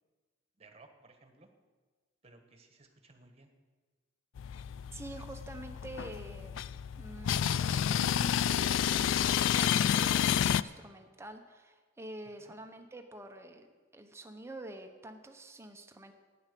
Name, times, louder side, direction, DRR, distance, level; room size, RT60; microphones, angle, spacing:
voice 1, 0.6-1.5 2.2-3.5 12.4-12.5, right 3 dB, 30° right, 5 dB, 1.4 m, -59 dB
sound 1, 4.4-10.6, left 9 dB, 75° left, 0.3 m, -30 dB
voice 2, 4.9-6.6 7.0-13.7 13.9-16.1, right 1 dB, 15° right, 5 dB, 1.0 m, -47 dB
12.0 x 9.6 x 6.8 m, 1.4 s
head